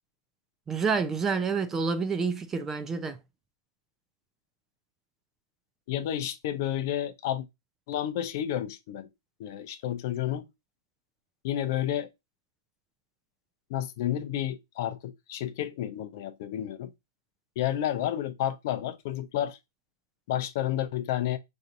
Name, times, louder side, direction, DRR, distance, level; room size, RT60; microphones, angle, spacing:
voice 1, 0.7-3.2, right 5 dB, 15° right, 0.4 m, -28 dB
voice 2, 5.9-7.4 7.9-9.1 9.4-10.5 11.4-12.1 13.7-16.9 17.6-19.6 20.3-21.4, left 11 dB, 50° left, 0.5 m, -31 dB
5.7 x 2.6 x 2.5 m
hypercardioid pair, 130°, 2 cm